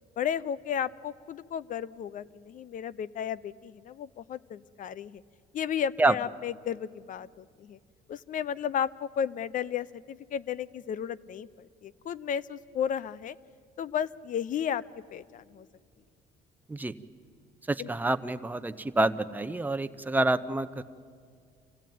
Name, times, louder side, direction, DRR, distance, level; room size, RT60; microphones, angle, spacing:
voice 1, 0.2-5.2 5.5-7.8 8.1-13.3 13.8-14.8 15.1-15.7 17.8-17.9, left 8 dB, 50° left, 20 dB, 0.6 m, -33 dB
voice 2, 17.7-20.8, right 2 dB, 10° right, 11 dB, 0.8 m, -27 dB
26.5 x 16.5 x 9.3 m, 2.2 s
cardioid pair, 110°, 17 cm